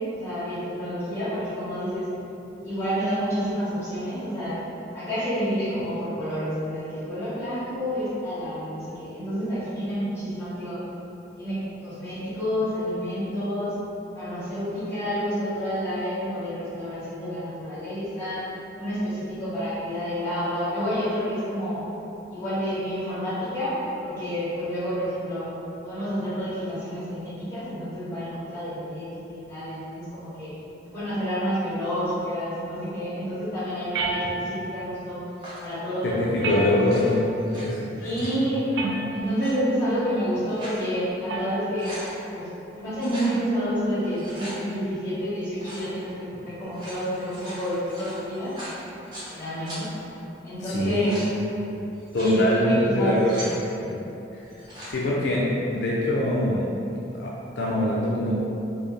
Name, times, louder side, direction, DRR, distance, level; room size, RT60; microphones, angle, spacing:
voice 1, 0.1-2.0 2.6-4.6 4.9-10.8 11.4-13.8 14.1-18.4 18.7-21.8 22.3-25.4 25.8-30.5 30.9-35.2 35.6-37.0 38.0-38.7 39.1-41.9 42.3-42.5 42.7-48.6 49.3-49.9 50.4-51.1 52.1-53.5, equal, 15° left, -14 dB, 1.5 m, -29 dB
sound 1, 33.9-34.8 36.4-37.3 38.7-39.4 41.3-41.7, right 3 dB, 75° right, 0.3 m, -30 dB
sound 2, 35.4-35.7 36.7-37.6 38.0-38.4 39.2-39.5 40.2-40.8 41.3-41.4 41.6-42.1 43.0-43.3 44.0-44.6 45.6-45.9 46.6-49.3 49.7-49.8 50.7-51.3 51.9-52.4 53.0-53.6 54.5-54.9, equal, 25° right, 0.9 m, -40 dB
voice 2, 36.0-38.1 50.6-51.1 52.1-53.3 53.8-54.0 54.3-54.4 54.8-56.6 57.1-58.3, left 1 dB, 70° left, -5 dB, 0.4 m, -24 dB
4.5 x 2.0 x 3.2 m, 2.9 s
head